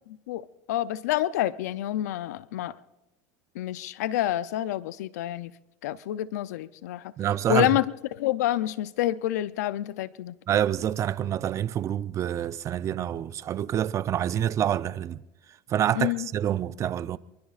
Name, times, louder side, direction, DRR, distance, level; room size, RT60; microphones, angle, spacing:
voice 1, 0.3-2.8 3.6-5.5 5.8-7.1 7.5-7.8 8.1-10.4 15.9-16.3, left 14 dB, 85° left, 0.5 m, -28 dB
voice 2, 7.2-7.7 10.5-15.2 15.7-17.2, right 10 dB, 35° right, 0.5 m, -27 dB
25.0 x 23.5 x 2.4 m
supercardioid pair, 110°, 9 cm